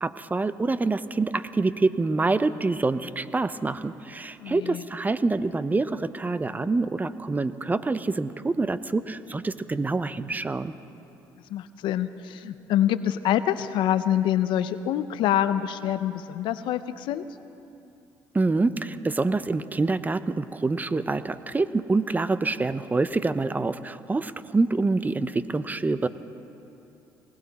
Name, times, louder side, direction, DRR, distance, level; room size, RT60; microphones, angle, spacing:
voice 1, 0.0-10.7 18.3-26.1, right 3 dB, 20° right, 14 dB, 0.6 m, -26 dB
voice 2, 4.4-4.8 11.5-17.3, left 11 dB, 70° left, 13 dB, 0.6 m, -26 dB
19.5 x 17.5 x 4.2 m, 2.8 s
supercardioid pair, 75°, 9 cm